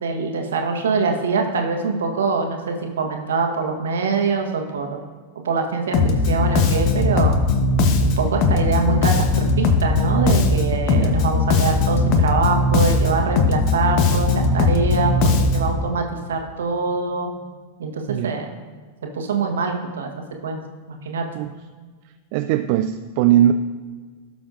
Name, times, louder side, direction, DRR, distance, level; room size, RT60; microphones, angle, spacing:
voice 1, 0.0-5.0 5.4-6.0 6.3-7.4 8.0-17.3 17.8-18.5 19.1-20.1 20.4-20.6 20.9-21.2, right 4 dB, 65° right, 3 dB, 1.4 m, -24 dB
Bass guitar, 5.9-15.8, left 3 dB, 40° left, 1.1 m, -19 dB
voice 2, 10.9-11.2 18.1-18.4 21.3-21.5 22.3-23.5, right 12 dB, 45° right, 10 dB, 0.4 m, -20 dB
17.0 x 6.9 x 2.6 m, 1.5 s
figure-of-eight pair, 90°, 0 cm